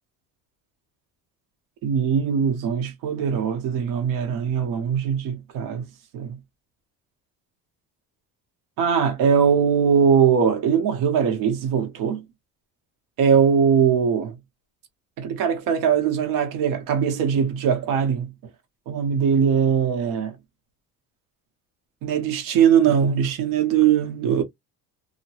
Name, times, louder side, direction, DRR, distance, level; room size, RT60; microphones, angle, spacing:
voice 1, 1.8-5.9 6.1-6.4 8.8-12.2 13.2-14.4 15.2-18.3 18.9-20.4 22.0-24.4, right 7 dB, 75° right, 1.0 m, -21 dB
2.9 x 2.1 x 2.9 m
cardioid pair, 160°, 33 cm